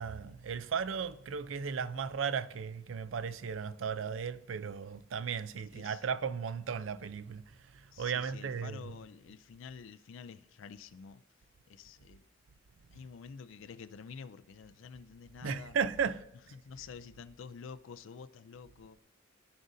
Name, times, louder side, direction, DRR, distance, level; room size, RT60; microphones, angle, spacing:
voice 1, 0.0-8.9 15.4-16.6, right 6 dB, 90° right, 0.4 m, -36 dB
voice 2, 7.9-11.2 11.7-12.3 12.9-15.8 16.5-19.0, left 6 dB, 85° left, 0.4 m, -49 dB
15.0 x 5.0 x 2.6 m
head